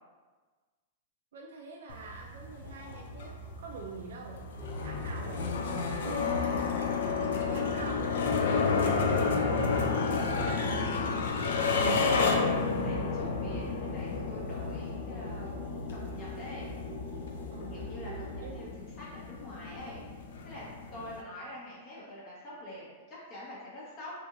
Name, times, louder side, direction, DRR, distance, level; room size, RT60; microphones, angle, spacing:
voice 1, 1.3-4.5 4.8-6.7 7.3-11.0 11.9-12.6 17.5-18.0 18.4-18.7, right 3 dB, 75° right, -1 dB, 0.3 m, -45 dB
sound 1, 1.9-21.2, left 4 dB, 80° left, 0.3 m, -31 dB
sound 2, 4.6-18.6, equal, 15° right, 0.8 m, -42 dB
voice 2, 4.9-5.6 12.7-15.9 16.1-16.7 17.7-20.0 20.4-20.7 20.9-24.1, left 1 dB, 35° left, -6 dB, 0.7 m, -46 dB
2.8 x 2.7 x 2.3 m, 1.4 s
hypercardioid pair, 145°, 0 cm